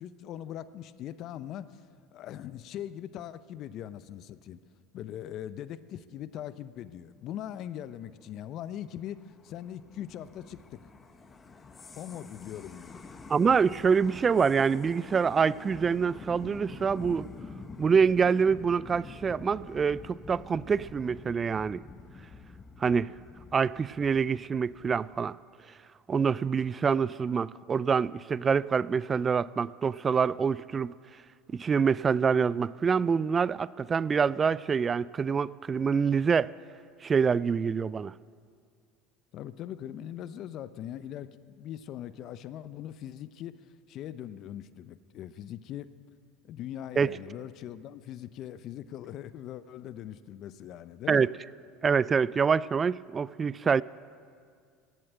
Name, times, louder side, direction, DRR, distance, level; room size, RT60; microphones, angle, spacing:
voice 1, 0.0-1.8 2.1-4.6 4.9-10.8 11.9-13.2 39.3-41.3 41.6-43.6 43.9-45.9 46.4-51.3, left 11 dB, 55° left, 0.6 m, -41 dB
sound 1, 8.6-25.2, left 4 dB, 25° left, 1.2 m, -47 dB
voice 2, 13.3-17.3 17.8-21.8 22.8-23.1 23.5-25.4 26.1-30.9 31.5-36.5 37.0-38.1 47.0-47.1 51.1-51.3 51.8-53.8, right 6 dB, 30° right, 0.3 m, -26 dB
16.5 x 7.7 x 8.9 m
hypercardioid pair, 85°, 0 cm